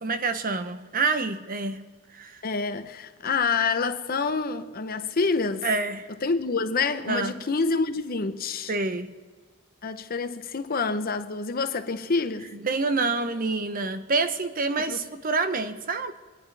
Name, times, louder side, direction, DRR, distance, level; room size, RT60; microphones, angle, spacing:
voice 1, 0.0-1.8 2.1-2.4 5.6-6.1 7.1-7.4 8.7-9.1 12.6-16.1, right 3 dB, 45° right, 0.8 m, -27 dB
voice 2, 2.4-5.7 6.2-8.7 9.8-12.5 14.9-15.0, left 4 dB, 45° left, 0.8 m, -27 dB
25.5 x 10.0 x 3.4 m
head